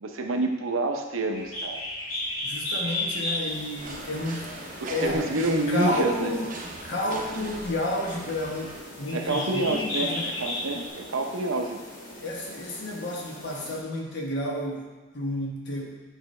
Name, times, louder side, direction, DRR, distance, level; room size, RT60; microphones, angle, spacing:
voice 1, 0.0-1.8 4.8-6.4 9.1-11.8, right 2 dB, 75° right, 4 dB, 0.7 m, -28 dB
Bird, 1.3-10.9, left 2 dB, 80° left, 2.1 m, -34 dB
voice 2, 2.4-4.5 4.9-10.3 12.2-15.9, left 1 dB, 55° left, -1 dB, 1.2 m, -31 dB
sound 1, 3.5-13.8, left 1 dB, 40° left, 1.1 m, -44 dB
sound 2, 3.8-8.8, right 2 dB, 40° right, 0.7 m, -40 dB
8.1 x 5.2 x 3.2 m, 1.2 s
head